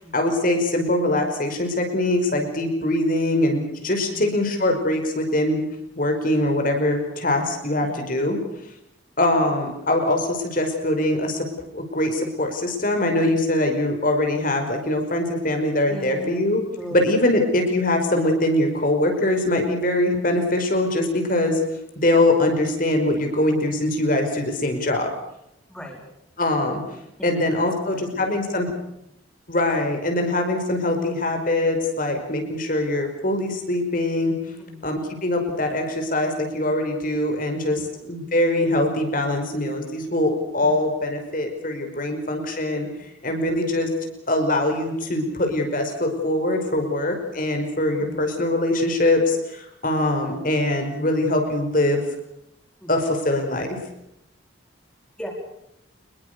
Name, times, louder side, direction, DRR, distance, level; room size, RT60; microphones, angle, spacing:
voice 1, 0.1-5.6 6.0-8.4 9.2-11.5 11.7-16.6 16.9-21.6 22.0-25.1 26.4-26.8 27.2-28.7 29.5-34.3 34.8-37.8 38.1-43.9 44.3-52.0 52.9-53.7, left 1 dB, 45° left, 4 dB, 5.3 m, -22 dB
voice 2, 3.9-4.3 7.8-8.0 13.7-13.8 15.9-16.5 16.8-17.3 25.7-26.0 27.2-28.4 28.8-28.9 32.1-32.3 34.6-34.9 37.7-37.9 40.6-40.8 43.3-43.6 46.7-46.9 48.0-48.2 50.3-50.4 52.8-52.9 55.2-55.3, equal, 5° left, 0 dB, 4.4 m, -39 dB
26.5 x 21.5 x 6.8 m, 0.81 s
head